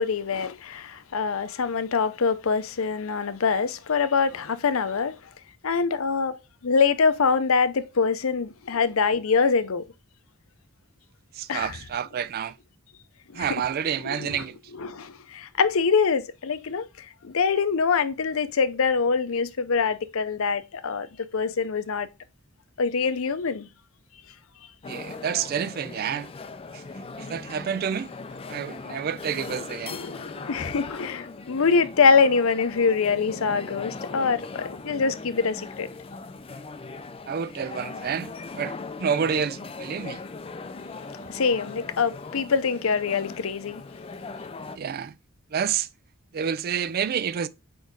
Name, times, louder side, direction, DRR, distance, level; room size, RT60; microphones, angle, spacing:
voice 1, 0.0-5.2 5.6-9.8 11.5-11.8 13.3-13.6 14.1-14.4 14.7-21.1 21.3-22.1 22.8-23.7 29.9-35.9 41.3-43.8, left 5 dB, 75° left, 0.6 m, -24 dB
voice 2, 11.3-12.6 13.3-14.6 24.9-26.3 26.7-26.8 27.2-28.1 28.5-30.0 37.3-40.2 44.7-45.1 45.5-45.9 46.3-47.5, right 7 dB, 45° right, 0.3 m, -29 dB
sound 1, 24.8-44.8, left 3 dB, 25° left, 0.4 m, -39 dB
4.6 x 4.5 x 4.6 m
head